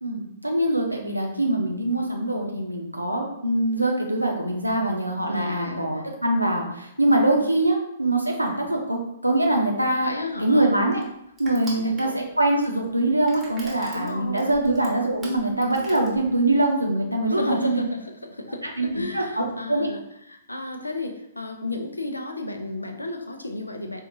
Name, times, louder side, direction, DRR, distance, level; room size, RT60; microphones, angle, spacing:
voice 1, 0.0-10.1 10.4-11.0 11.4-17.8 18.8-19.9, right 1 dB, 85° right, 1 dB, 0.6 m, -23 dB
voice 2, 5.3-6.2 9.9-10.8 11.7-12.2 13.9-14.6 17.3-20.0 20.3-24.0, left 2 dB, 80° left, 5 dB, 0.4 m, -33 dB
Crushing, 9.8-16.7, right 1 dB, 10° right, 0.9 m, -45 dB
4.5 x 2.4 x 2.5 m, 0.79 s
figure-of-eight pair, 115°, 0 cm